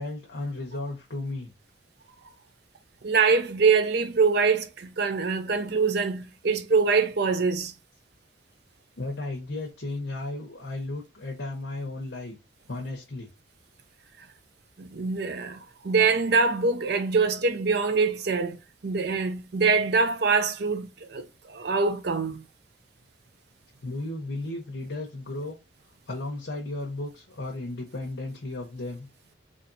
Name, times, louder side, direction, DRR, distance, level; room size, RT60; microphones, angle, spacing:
voice 1, 0.0-1.5 9.0-12.4 12.7-13.3 23.8-25.5 26.1-29.1, left 2 dB, 65° left, 1.0 m, -34 dB
voice 2, 3.0-7.7 14.8-18.6 18.8-21.2 21.5-22.4, right 4 dB, 60° right, 0.6 m, -24 dB
4.2 x 2.8 x 2.6 m
head